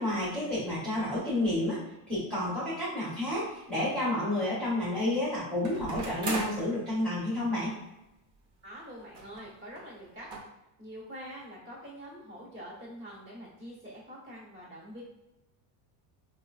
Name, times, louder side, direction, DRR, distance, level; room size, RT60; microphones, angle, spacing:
voice 1, 0.0-1.8 2.1-7.7, left 1 dB, ahead, -9 dB, 0.7 m, -30 dB
sound 1, 3.3-3.4 5.6-6.7 7.6-7.7 7.9-8.0 9.1-9.5 9.8-9.9 10.3-10.4, right 2 dB, 65° right, 1.0 m, -36 dB
voice 2, 8.6-10.3 10.8-15.0, equal, 25° right, -5 dB, 1.0 m, -45 dB
4.4 x 2.4 x 2.3 m, 0.95 s
cardioid pair, 170°, 50 cm